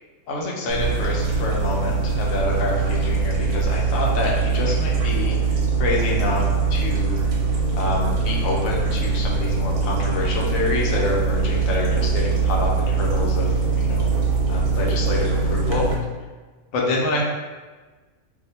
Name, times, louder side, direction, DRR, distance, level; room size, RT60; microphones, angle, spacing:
voice 1, 0.3-6.4 6.7-7.2 7.7-14.1 14.5-15.9 16.7-17.2, left 2 dB, 85° left, -2 dB, 1.1 m, -27 dB
sound 1, 0.7-15.9, right 4 dB, 75° right, 1.0 m, -22 dB
2.8 x 2.0 x 4.1 m, 1.3 s
omnidirectional pair, 1.4 m